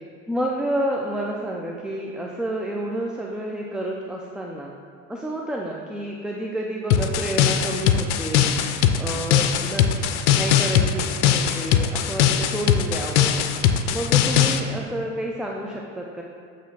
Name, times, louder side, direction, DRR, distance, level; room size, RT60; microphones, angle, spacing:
voice 1, 0.3-4.7 5.1-9.9 10.3-13.4 13.9-16.2, right 1 dB, ahead, -1 dB, 0.5 m, -30 dB
sound 1, 6.9-14.6, left 9 dB, 85° left, 0.5 m, -20 dB
8.1 x 3.2 x 5.7 m, 2.2 s
supercardioid pair, 85°, 35 cm